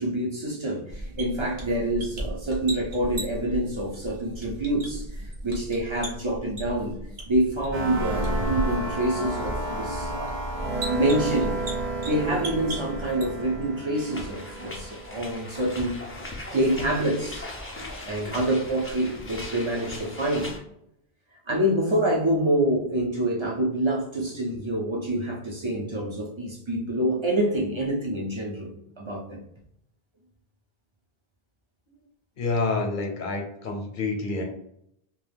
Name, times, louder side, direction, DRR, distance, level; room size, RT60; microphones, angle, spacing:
voice 1, 0.0-7.0 7.3-10.3 10.9-11.6 12.0-16.0 16.5-17.5 18.0-20.6 21.5-29.4, right 1 dB, 35° right, -2 dB, 0.5 m, -26 dB
sound 1, 0.9-13.7, right 1 dB, 50° right, 1.0 m, -36 dB
sound 2, 7.7-16.3, right 2 dB, 80° right, 0.9 m, -32 dB
sound 3, 13.9-20.6, left 2 dB, 20° left, 0.3 m, -39 dB
voice 2, 32.4-34.4, left 3 dB, 60° left, 2 dB, 0.8 m, -28 dB
2.3 x 2.3 x 3.3 m, 0.75 s
omnidirectional pair, 1.0 m